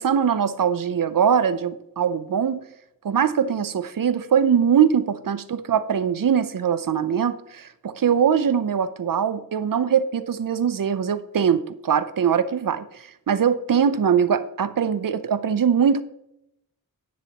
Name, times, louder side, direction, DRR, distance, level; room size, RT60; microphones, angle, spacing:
voice 1, 0.0-2.6 3.0-16.0, right 7 dB, 70° right, 0.6 m, -22 dB
10.5 x 10.0 x 3.0 m
wide cardioid pair, 90°, 35 cm